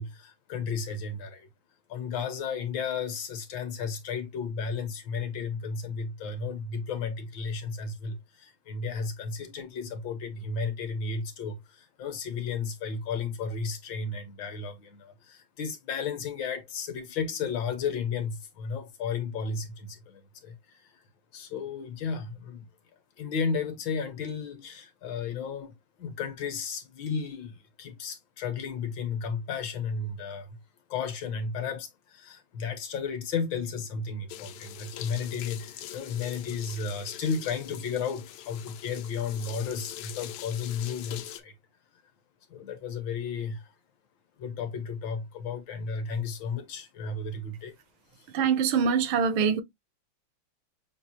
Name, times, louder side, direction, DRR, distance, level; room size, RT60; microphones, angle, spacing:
voice 1, 0.0-1.5 1.9-21.0 21.3-22.7 23.2-25.7 26.0-30.5 30.9-41.5 42.5-43.7 44.4-47.7 48.1-48.3, left 5 dB, 75° left, 1.6 m, -33 dB
sound 1, 34.3-41.4, left 12 dB, 90° left, 1.5 m, -43 dB
voice 2, 48.3-49.6, right 6 dB, 80° right, 1.5 m, -24 dB
6.4 x 2.4 x 2.8 m
omnidirectional pair, 2.2 m